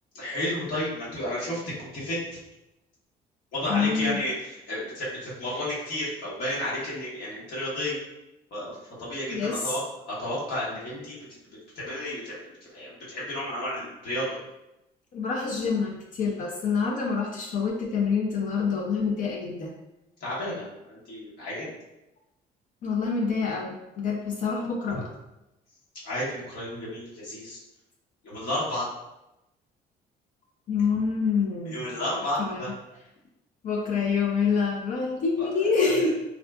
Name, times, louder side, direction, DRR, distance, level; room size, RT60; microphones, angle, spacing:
voice 1, 0.1-2.4 3.5-8.0 8.5-9.8 10.1-11.2 11.5-14.3 20.2-21.7 24.9-25.0 26.0-27.6 28.2-28.9 31.6-32.7 35.4-36.1, left 1 dB, 70° left, -8 dB, 1.2 m, -32 dB
voice 2, 3.7-4.2 9.3-9.7 15.1-19.7 22.8-25.1 30.7-31.8 32.4-32.7 33.6-36.1, left 5 dB, 50° left, 0 dB, 0.4 m, -26 dB
3.5 x 2.4 x 2.2 m, 0.92 s
cardioid pair, 110°, 17 cm